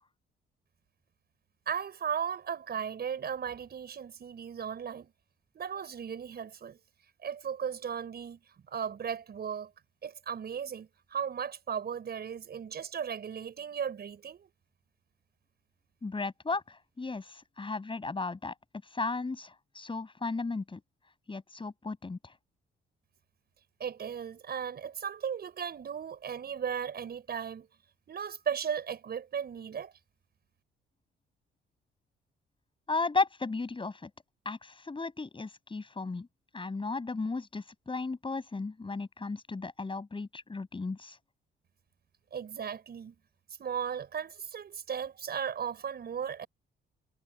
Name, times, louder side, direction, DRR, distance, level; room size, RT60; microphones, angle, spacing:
voice 1, 1.7-5.1 5.5-6.8 7.2-8.4 8.7-9.7 10.0-14.5 23.8-27.7 28.1-29.9 42.3-43.1 43.6-46.5, right 7 dB, 55° right, 6.4 m, -36 dB
voice 2, 16.0-18.5 18.9-20.8 21.3-22.3 32.9-34.1 34.5-36.3 36.5-41.2, left 3 dB, 25° left, 7.1 m, -35 dB
cardioid pair, 90°, 20 cm